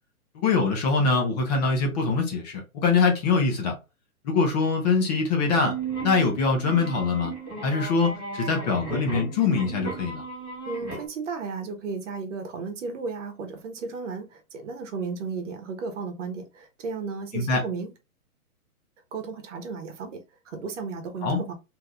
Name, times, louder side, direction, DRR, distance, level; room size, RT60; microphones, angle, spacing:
voice 1, 0.3-3.8 4.2-5.8 6.0-7.3 7.6-10.2 17.3-17.6 21.2-21.4, left 4 dB, 30° left, 0.8 m, -23 dB
sound 1, 5.4-11.1, right 4 dB, ahead, 0.4 m, -35 dB
voice 2, 10.7-17.9 19.1-21.5, right 4 dB, 55° right, 1.0 m, -34 dB
3.4 x 2.8 x 2.3 m
hypercardioid pair, 150°, 44 cm